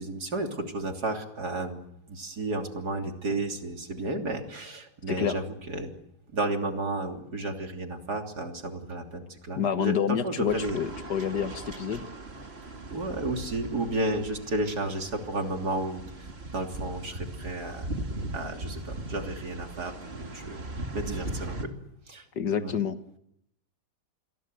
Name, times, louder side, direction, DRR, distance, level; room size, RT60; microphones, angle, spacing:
voice 1, 0.0-5.9 6.3-10.8 12.9-17.9 18.3-20.6 20.9-21.7 22.1-22.3 22.6-22.7, right 2 dB, 65° right, 3 dB, 3.7 m, -32 dB
voice 2, 5.1-5.4 9.6-12.0 22.4-23.0, left 8 dB, 75° left, 10 dB, 1.9 m, -28 dB
sound 1, 10.5-21.7, right 1 dB, 35° right, 2.6 m, -39 dB
27.5 x 22.5 x 8.0 m, 0.78 s
omnidirectional pair, 1.8 m